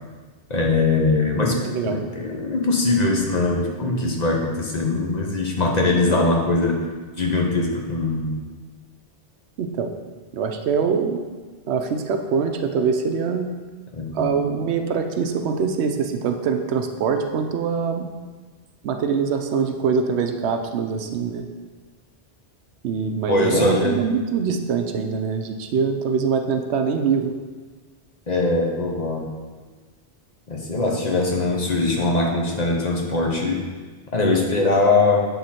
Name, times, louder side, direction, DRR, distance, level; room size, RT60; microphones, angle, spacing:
voice 1, 0.5-1.6 1.8-6.8 7.2-8.4 13.9-14.3 23.3-24.0 28.3-29.3 30.5-33.6 34.1-35.3, left 3 dB, 40° left, -1 dB, 0.9 m, -21 dB
voice 2, 1.3-2.0 6.1-6.3 9.6-9.9 10.3-11.2 11.7-13.5 14.1-18.1 18.8-21.5 22.8-27.3, right 6 dB, 80° right, 6 dB, 0.9 m, -23 dB
7.9 x 3.7 x 4.2 m, 1.4 s
omnidirectional pair, 1.1 m